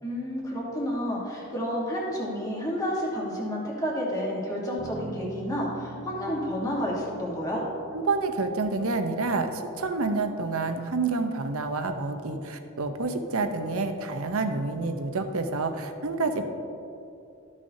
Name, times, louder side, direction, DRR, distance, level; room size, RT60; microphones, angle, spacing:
voice 1, 0.0-7.6, equal, 15° left, -5 dB, 1.3 m, -30 dB
Bass guitar, 4.8-9.1, right 2 dB, 5° right, 1.3 m, -44 dB
voice 2, 7.9-16.5, right 3 dB, 70° right, 6 dB, 0.7 m, -28 dB
13.0 x 6.5 x 2.7 m, 2.7 s
head